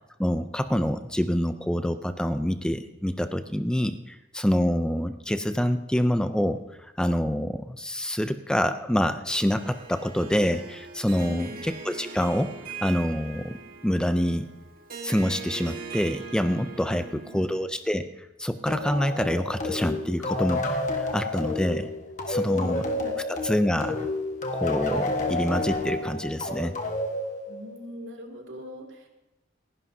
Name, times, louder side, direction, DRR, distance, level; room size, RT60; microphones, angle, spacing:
voice 1, 0.2-12.5 12.8-14.5 15.0-20.6 21.0-21.9 22.3-22.8 23.4-24.1 24.5-26.8, equal, 5° left, 9 dB, 0.4 m, -26 dB
Harp, 9.3-17.7, right 5 dB, 50° right, 1.7 m, -41 dB
voice 2, 11.2-11.6 16.8-17.4 22.4-23.1 27.5-29.1, left 1 dB, 75° right, 1 dB, 2.4 m, -42 dB
sound 1, 18.7-27.9, left 2 dB, 40° left, 1.4 m, -30 dB
29.5 x 11.0 x 2.7 m, 0.95 s
head